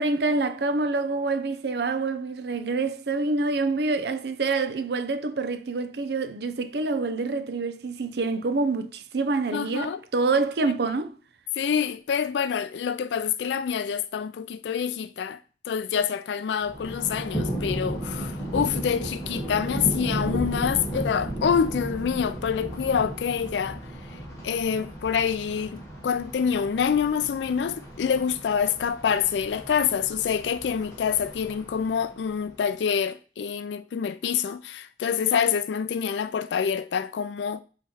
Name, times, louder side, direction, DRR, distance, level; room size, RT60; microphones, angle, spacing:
voice 1, 0.0-11.1, right 3 dB, 70° right, 0.6 m, -26 dB
voice 2, 9.5-10.0 10.6-10.7 11.6-15.4 15.7-23.8 24.4-37.6, left 7 dB, 80° left, 0.3 m, -26 dB
Thunder, 16.6-32.5, right 1 dB, 15° left, 1.6 m, -34 dB
8.2 x 3.1 x 4.2 m
head